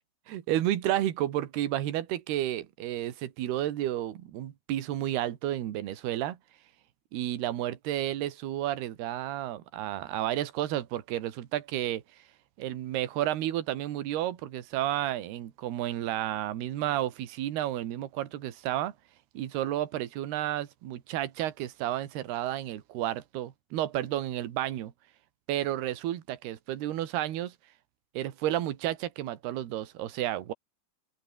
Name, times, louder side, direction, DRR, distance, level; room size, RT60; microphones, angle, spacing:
voice 1, 0.3-6.4 7.1-12.0 12.6-18.9 19.4-24.9 25.5-27.5 28.2-30.5, right 13 dB, 65° right, 3.6 m, -31 dB
open air
omnidirectional pair, 5.4 m